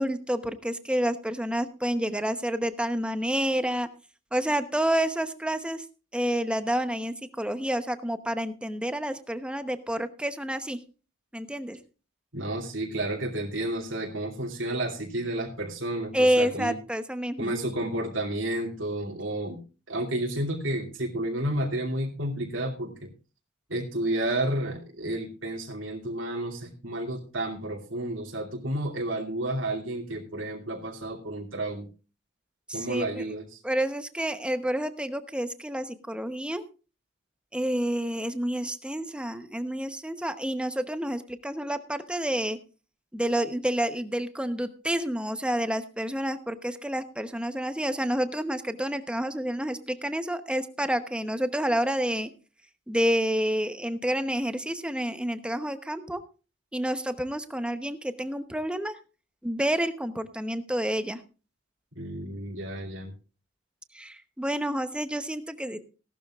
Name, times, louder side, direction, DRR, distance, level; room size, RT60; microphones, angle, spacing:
voice 1, 0.0-3.9 4.3-5.8 6.1-10.8 11.3-11.8 16.1-17.5 32.7-33.2 33.6-36.6 37.5-42.6 43.1-52.3 52.9-56.2 56.7-59.0 59.4-61.2 63.9-65.8, equal, 5° right, 9 dB, 0.9 m, -29 dB
voice 2, 12.3-16.8 17.4-19.6 19.9-23.1 23.7-31.9 32.7-33.6 62.0-63.1, right 1 dB, 80° right, -1 dB, 2.7 m, -31 dB
17.5 x 12.0 x 2.4 m, 0.34 s
head